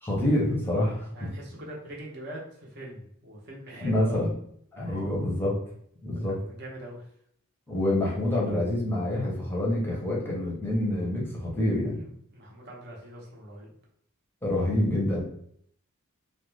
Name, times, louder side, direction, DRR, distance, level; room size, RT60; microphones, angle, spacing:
voice 1, 0.0-1.3 3.8-4.3 4.7-5.6 6.0-6.4 7.7-12.0 14.4-15.2, left 1 dB, 10° left, -4 dB, 0.6 m, -27 dB
voice 2, 1.1-4.3 4.7-5.1 6.3-7.0 12.0-13.7, right 1 dB, 50° right, -3 dB, 0.7 m, -43 dB
2.4 x 2.1 x 3.1 m, 0.67 s
head